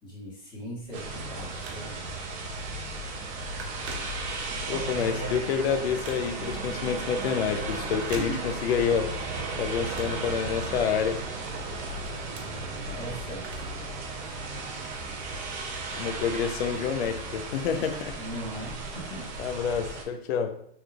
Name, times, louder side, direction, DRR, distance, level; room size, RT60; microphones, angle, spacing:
voice 1, 0.0-2.3 8.1-8.5 12.3-13.5 18.2-19.3, equal, 15° left, -5 dB, 1.3 m, -40 dB
Telephone, 0.8-2.2 2.7-2.9 3.2-4.7 5.1-6.6 7.8-8.9 9.2-11.0 11.4-13.9 14.2-14.3 15.2-15.3, right 3 dB, 75° right, 1.0 m, -45 dB
sound 1, 0.9-20.0, right 3 dB, 25° right, 0.5 m, -35 dB
voice 2, 4.7-9.1 9.6-11.2 15.9-18.2 19.4-20.6, left 7 dB, 65° left, 7 dB, 0.6 m, -28 dB
4.1 x 3.5 x 2.4 m, 0.70 s
supercardioid pair, 150°, 33 cm